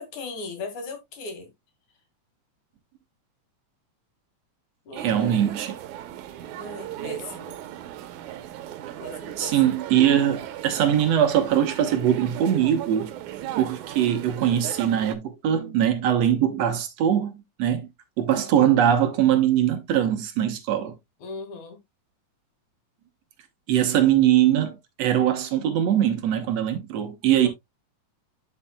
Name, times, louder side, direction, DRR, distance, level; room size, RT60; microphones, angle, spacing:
voice 1, 0.0-1.5 4.9-5.5 6.5-7.6 9.0-9.8 21.2-21.8 27.4-27.5, left 3 dB, 90° left, 3.4 m, -38 dB
voice 2, 5.0-5.7 9.4-13.1 13.5-17.3 17.6-17.9 18.2-21.0 23.7-27.5, right 10 dB, 65° right, 2.2 m, -22 dB
sound 1, 5.0-15.2, right 12 dB, 90° right, 2.3 m, -37 dB
11.0 x 5.6 x 2.2 m
omnidirectional pair, 3.3 m